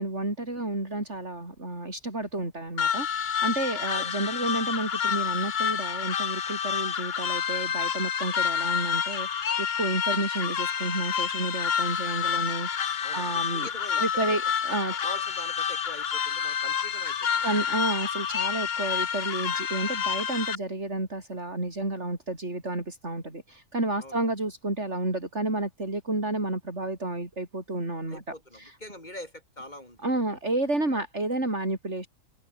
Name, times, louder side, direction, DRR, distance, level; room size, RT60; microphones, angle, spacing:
voice 1, 0.0-13.7 14.0-14.9 17.4-28.7 30.0-32.1, right 2 dB, 55° right, 5.9 m, -31 dB
sound 1, 2.8-20.6, left 7 dB, 50° left, 1.1 m, -29 dB
voice 2, 13.0-14.5 14.9-17.4 24.0-24.2 28.1-30.0 30.9-31.0, left 1 dB, 35° left, 8.2 m, -43 dB
open air
omnidirectional pair, 1.4 m